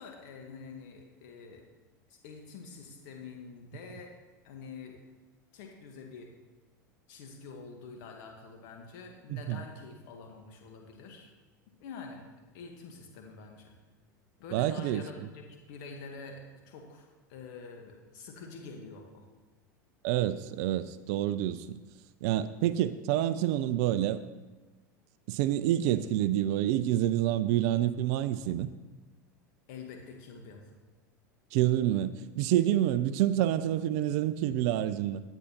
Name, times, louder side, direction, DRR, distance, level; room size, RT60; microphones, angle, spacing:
voice 1, 0.0-1.6 2.1-4.1 4.4-5.0 5.5-6.3 7.1-11.3 11.8-12.2 12.5-13.7 14.4-19.2 29.7-30.7, left 4 dB, 60° left, 2 dB, 1.2 m, -46 dB
voice 2, 14.5-15.0 20.0-21.8 22.2-24.2 25.3-28.7 31.5-35.2, right 12 dB, 55° right, 14 dB, 0.4 m, -28 dB
9.8 x 9.0 x 2.8 m, 1.2 s
hypercardioid pair, 85°, 11 cm